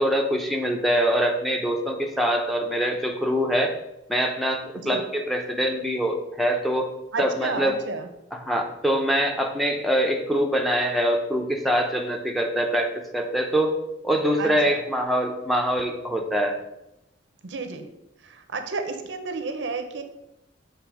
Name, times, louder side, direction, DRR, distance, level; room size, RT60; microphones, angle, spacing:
voice 1, 0.0-3.7 4.1-6.9 7.2-7.8 8.3-13.8 14.0-16.6, equal, ahead, 2 dB, 0.6 m, -24 dB
voice 2, 7.1-8.1 14.4-14.8 17.4-17.9 18.2-20.0, right 3 dB, 75° right, 7 dB, 0.7 m, -31 dB
6.7 x 3.4 x 4.8 m, 0.87 s
head